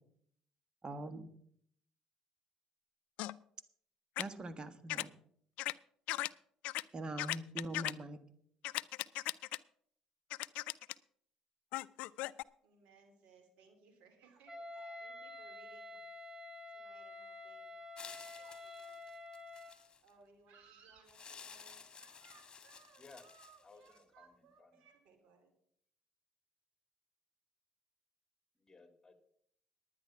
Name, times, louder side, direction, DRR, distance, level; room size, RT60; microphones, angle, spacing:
voice 1, 0.8-1.3 4.2-5.1 6.9-8.2, right 2 dB, 35° right, 11 dB, 1.5 m, -43 dB
sound 1, 3.2-3.3 4.2-4.3 4.9-5.0 5.6-5.7 6.1-6.3 6.6-6.8 7.2-7.9 8.6-9.6 10.3-10.9 11.7-12.4, left 18 dB, 75° left, 0.4 m, -37 dB
voice 2, 12.6-16.0 16.7-17.7 18.4-19.0 19.6-19.7 20.0-25.5, right 5 dB, 75° right, 5 dB, 2.7 m, -64 dB
Wind instrument woodwind instrument, 14.5-19.8, left 2 dB, 15° right, 2.4 m, -49 dB
sound 2, 18.0-20.1 21.1-24.0, left 6 dB, 35° left, 1.8 m, -54 dB
voice 3, 23.6-24.3 24.6-24.8 28.6-29.2, left 3 dB, 20° left, 7 dB, 2.7 m, -59 dB
10.5 x 9.7 x 5.9 m, 0.64 s
supercardioid pair, 65°, 2 cm